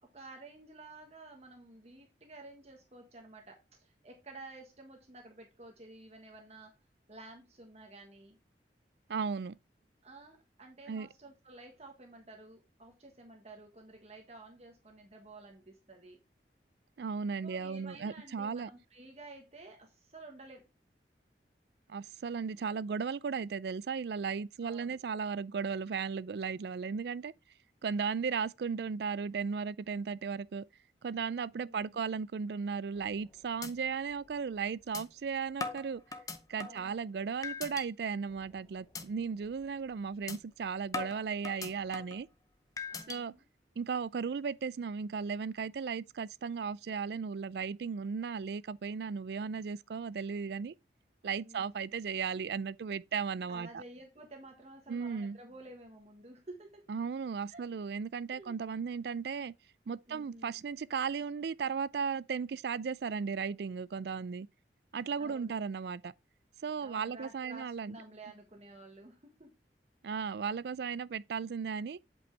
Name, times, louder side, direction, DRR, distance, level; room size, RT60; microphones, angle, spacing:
voice 1, 0.0-6.7 7.1-8.4 10.0-16.2 17.4-20.7 24.6-25.0 27.0-27.1 31.6-32.0 36.6-37.0 37.5-37.6 42.8-43.5 51.3-52.0 53.5-56.9 57.5-57.7 58.3-58.6 60.1-60.6 65.2-65.6 66.8-69.5, right 2 dB, 35° right, 1.3 m, -52 dB
voice 2, 9.1-9.6 10.9-11.1 17.0-18.7 21.9-27.3 27.8-30.6 31.0-36.0 36.5-42.3 43.1-43.3 43.8-50.7 51.2-53.8 54.9-55.4 56.9-59.5 59.9-64.5 64.9-66.1 66.6-68.0 70.0-72.0, right 6 dB, 65° right, 0.4 m, -36 dB
sound 1, 33.0-33.3 33.6-33.7 34.1-34.2 34.9-35.0 35.6-36.9 37.4-37.9 38.3-38.5 38.9-39.1 39.5-39.6 40.3-40.4 40.9-42.2 42.8-43.2, left 4 dB, 20° left, 0.7 m, -40 dB
8.0 x 5.4 x 3.3 m
head